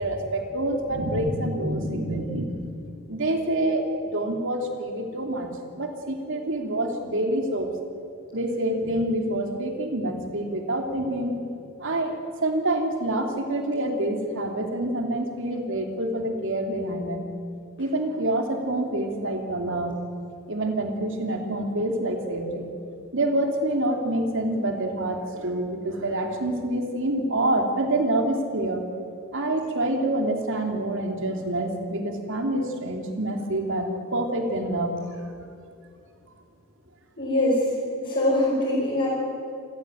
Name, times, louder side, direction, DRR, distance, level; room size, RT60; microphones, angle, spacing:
voice 1, 0.0-2.6 3.1-3.8 4.1-7.7 8.3-11.4 11.8-17.3 17.8-19.9 20.5-22.7 23.1-28.8 29.3-35.2, right 1 dB, 60° right, 4 dB, 3.0 m, -27 dB
voice 2, 37.2-37.6 38.0-39.1, left 1 dB, 45° left, -7 dB, 5.9 m, -23 dB
27.5 x 15.5 x 9.2 m, 2.5 s
head